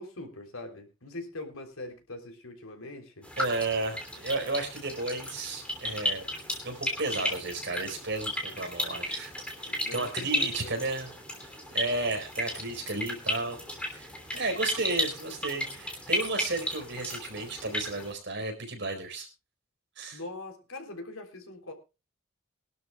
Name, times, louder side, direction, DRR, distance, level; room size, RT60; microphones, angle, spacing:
voice 1, 0.0-3.3 9.7-10.8 20.1-21.7, left 2 dB, 75° left, 4 dB, 3.5 m, -42 dB
sound 1, 3.2-18.1, left 1 dB, 5° left, 3.1 m, -34 dB
voice 2, 3.4-6.3 6.6-9.3 9.6-11.1 11.4-19.3 20.0-20.2, right 2 dB, 55° right, 4 dB, 4.5 m, -33 dB
22.5 x 12.0 x 2.4 m, 0.29 s
head